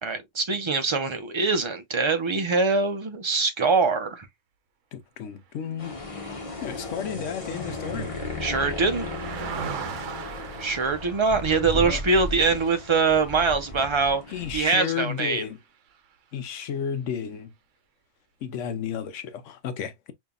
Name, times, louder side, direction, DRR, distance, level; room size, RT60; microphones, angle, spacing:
voice 1, 0.0-4.3 8.4-9.1 10.6-14.2 14.5-15.4, right 4 dB, 35° right, 0.4 m, -23 dB
voice 2, 4.9-5.9 6.6-8.1 11.7-12.0 14.3-15.6 16.3-17.5 18.4-20.1, left 8 dB, 75° left, 1.0 m, -32 dB
sound 1, 5.8-14.7, left 2 dB, 30° left, 1.0 m, -35 dB
Car passing by, 6.0-15.5 15.9-16.1, right 7 dB, 75° right, 1.0 m, -41 dB
5.3 x 2.8 x 2.3 m
omnidirectional pair, 1.3 m